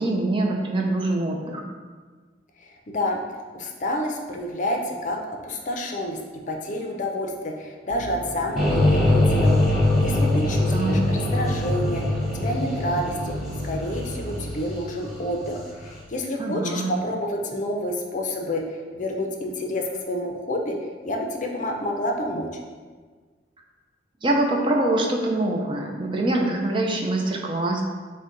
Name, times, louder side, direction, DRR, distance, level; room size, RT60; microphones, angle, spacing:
voice 1, 0.0-1.6 10.7-11.0 16.4-16.9 24.2-27.8, right 2 dB, 30° right, 0 dB, 0.5 m, -24 dB
voice 2, 2.6-3.2 3.5-6.2 6.5-13.3 13.6-20.7 21.0-22.5, left 1 dB, 45° left, 2 dB, 0.5 m, -29 dB
sound 1, 7.9-14.5, right 1 dB, 85° right, 0.8 m, -35 dB
sound 2, 8.6-15.7, left 1 dB, ahead, 1.0 m, -23 dB
6.3 x 2.2 x 3.9 m, 1.5 s
head